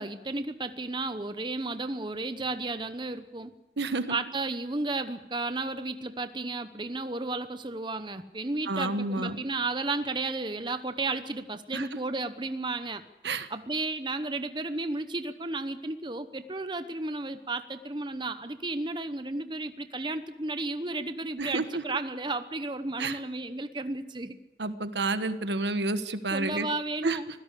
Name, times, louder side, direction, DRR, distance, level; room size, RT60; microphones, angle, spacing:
voice 1, 0.0-3.5 4.1-24.4 26.3-27.3, right 2 dB, 25° right, 10 dB, 0.9 m, -33 dB
voice 2, 3.8-4.2 8.7-9.4 11.7-11.9 13.2-13.5 21.4-21.8 23.0-23.2 24.6-26.7 27.0-27.2, right 3 dB, 80° right, 11 dB, 1.4 m, -30 dB
25.0 x 16.5 x 8.4 m, 0.92 s
head